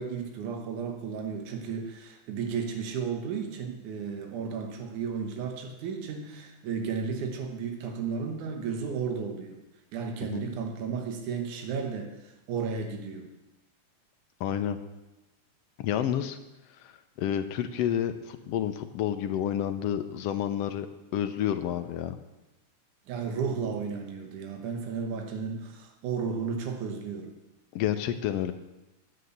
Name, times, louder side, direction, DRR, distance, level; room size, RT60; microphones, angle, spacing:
voice 1, 0.0-9.6 9.9-13.3 23.1-27.3, right 6 dB, 75° right, 4 dB, 2.8 m, -33 dB
voice 2, 14.4-14.8 15.8-16.4 16.8-16.9 17.2-20.9 21.1-22.2 27.7-28.5, left 10 dB, 80° left, 9 dB, 1.4 m, -29 dB
9.7 x 8.7 x 8.1 m, 0.99 s
omnidirectional pair, 3.5 m